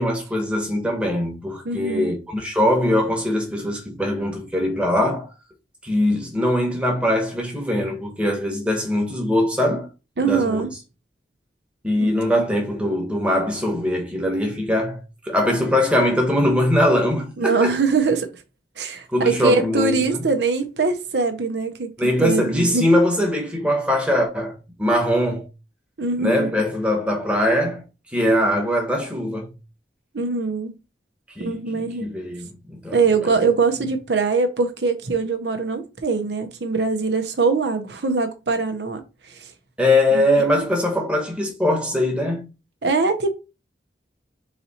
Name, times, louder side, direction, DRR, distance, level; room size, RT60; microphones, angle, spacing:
voice 1, 0.0-5.3 5.8-9.9 10.2-10.6 11.8-17.8 19.1-20.2 22.0-25.5 26.2-27.8 28.1-29.5 31.3-33.0 39.8-42.5, left 1 dB, 5° right, 1.1 m, -21 dB
voice 2, 1.6-2.1 10.2-10.7 12.0-12.1 17.4-18.3 18.8-21.9 22.2-22.8 26.0-26.5 30.1-30.7 31.4-32.1 32.9-39.0 39.3-39.5 40.1-40.4 42.8-43.3, right 4 dB, 80° right, 0.7 m, -22 dB
4.0 x 2.8 x 4.1 m
head